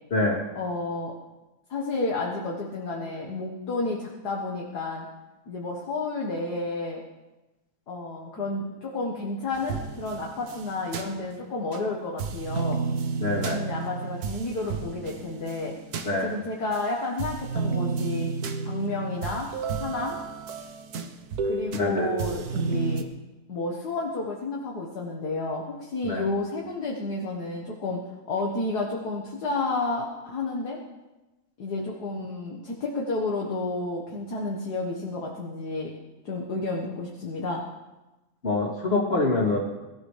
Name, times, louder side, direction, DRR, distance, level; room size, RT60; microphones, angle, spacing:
voice 1, 0.5-1.1 1.7-5.1 5.5-7.0 7.9-12.8 13.4-15.7 16.2-18.3 18.7-19.5 19.8-20.2 21.4-23.1 23.5-28.0 28.3-30.8 31.6-35.9 36.2-37.7, left 3 dB, 55° left, -2 dB, 1.9 m, -31 dB
sound 1, 9.5-11.8 12.2-16.8 17.2-23.0, right 5 dB, 55° right, 1.3 m, -32 dB
voice 2, 13.2-13.6 16.0-16.3 21.8-22.1 26.0-26.3 38.4-39.6, left 2 dB, 30° left, -3 dB, 3.2 m, -25 dB
22.0 x 14.0 x 3.4 m, 1.1 s
omnidirectional pair, 2.1 m